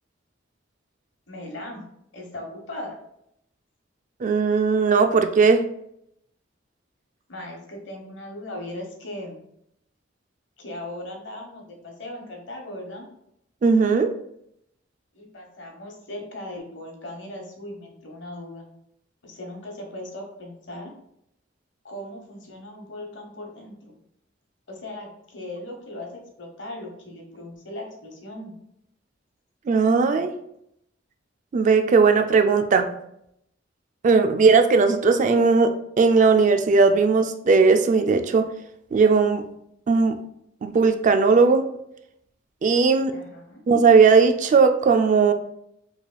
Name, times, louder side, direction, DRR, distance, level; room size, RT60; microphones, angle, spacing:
voice 1, 1.3-1.8 2.1-2.9 7.3-9.4 10.6-13.1 15.1-18.7 19.2-20.9 21.8-23.9 24.7-26.1 26.4-28.5 43.1-43.6, left 1 dB, 70° left, 1 dB, 1.1 m, -38 dB
voice 2, 4.2-5.6 13.6-14.1 29.7-30.3 31.5-32.9 34.0-38.5 38.9-39.4 39.9-40.2 40.6-41.7 42.6-43.1 43.7-45.3, right 4 dB, 40° right, 7 dB, 0.3 m, -18 dB
4.9 x 3.3 x 2.3 m, 0.76 s
head